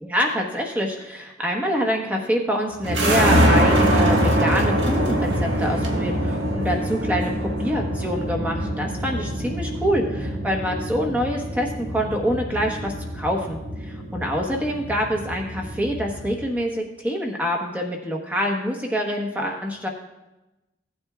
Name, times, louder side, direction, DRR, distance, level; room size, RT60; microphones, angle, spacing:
voice 1, 0.0-7.3 7.6-19.9, equal, 10° right, 0 dB, 1.1 m, -26 dB
sound 1, 2.8-16.4, equal, 75° right, 1.6 m, -24 dB
16.0 x 8.8 x 2.4 m, 0.98 s
head